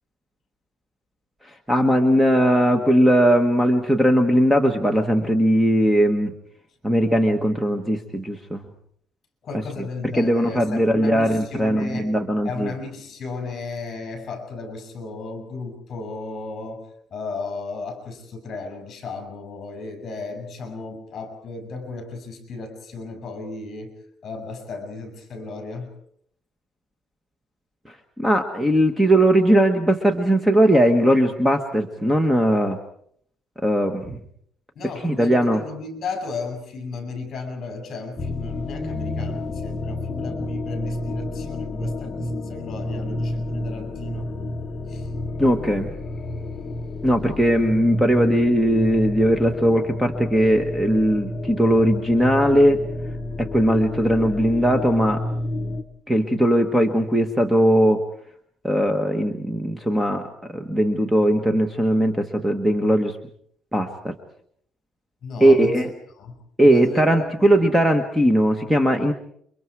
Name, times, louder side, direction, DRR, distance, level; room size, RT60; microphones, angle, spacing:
voice 1, 1.7-6.3 6.8-8.6 10.2-12.7 28.2-32.8 33.6-34.2 35.0-35.6 45.4-45.9 47.0-52.8 53.4-55.2 56.1-58.0 58.6-60.2 60.5-63.2 63.7-64.1 65.4-65.9 66.6-69.1, equal, 5° right, 6 dB, 1.3 m, -19 dB
voice 2, 9.4-12.1 12.4-25.9 34.7-44.3 44.9-45.1 65.2-65.8 66.2-67.6, left 3 dB, 35° left, 6 dB, 6.3 m, -35 dB
sound 1, 38.2-55.8, left 2 dB, 20° left, 1.5 m, -30 dB
29.0 x 24.0 x 4.8 m, 0.65 s
cardioid pair, 155°, 0 cm